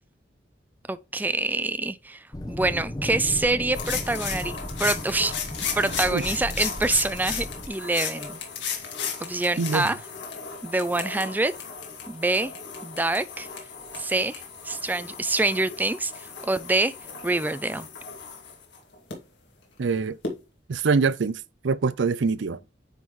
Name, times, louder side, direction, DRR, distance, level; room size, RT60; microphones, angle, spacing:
voice 1, 0.9-4.5 4.8-5.3 5.8-8.4 9.2-10.0 10.6-11.5 12.1-12.5 12.8-13.5 14.0-16.9 17.2-17.9, right 2 dB, 10° right, 0.3 m, -26 dB
sound 1, 2.3-7.7, left 1 dB, 20° left, 0.9 m, -36 dB
sound 2, 3.7-19.1 20.2-20.3, left 6 dB, 70° left, 2.2 m, -35 dB
sound 3, 5.6-9.3, right 2 dB, 50° right, 0.9 m, -43 dB
voice 2, 9.6-9.9 19.8-20.2 20.7-22.6, right 4 dB, 75° right, 0.5 m, -24 dB
9.2 x 3.8 x 3.1 m
head